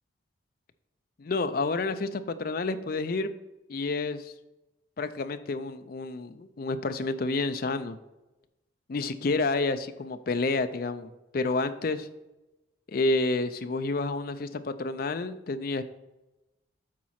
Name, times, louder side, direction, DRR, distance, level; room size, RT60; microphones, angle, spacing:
voice 1, 1.2-3.3 3.7-4.3 5.0-8.0 8.9-12.1 12.9-15.8, left 3 dB, 50° left, 10 dB, 0.4 m, -29 dB
7.4 x 4.2 x 5.7 m, 1.0 s
head